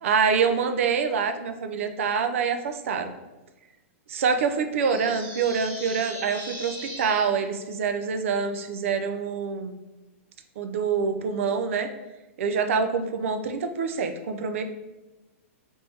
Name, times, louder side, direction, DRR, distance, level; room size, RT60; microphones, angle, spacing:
voice 1, 0.0-3.1 4.1-9.8 10.6-11.9 12.4-14.6, right 5 dB, 70° right, 8 dB, 0.4 m, -26 dB
sound 1, 4.8-7.2, right 1 dB, 15° right, 1.0 m, -39 dB
3.4 x 2.7 x 3.2 m, 1.1 s
hypercardioid pair, 155°, 7 cm